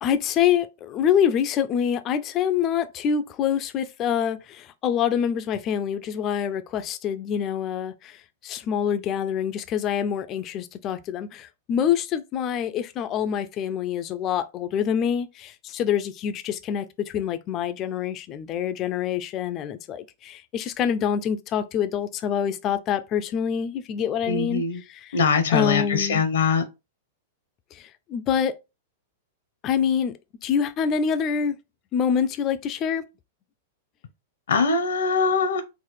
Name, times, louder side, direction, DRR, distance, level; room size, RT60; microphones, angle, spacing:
voice 1, 0.0-25.2 25.5-26.2 27.7-28.5 29.6-30.1 30.4-31.6 31.9-33.0, left 8 dB, 30° left, 0.4 m, -26 dB
voice 2, 24.3-24.8 25.1-26.6 34.5-35.6, left 5 dB, 85° left, 0.8 m, -22 dB
3.9 x 2.4 x 3.1 m
hypercardioid pair, 145°, 0 cm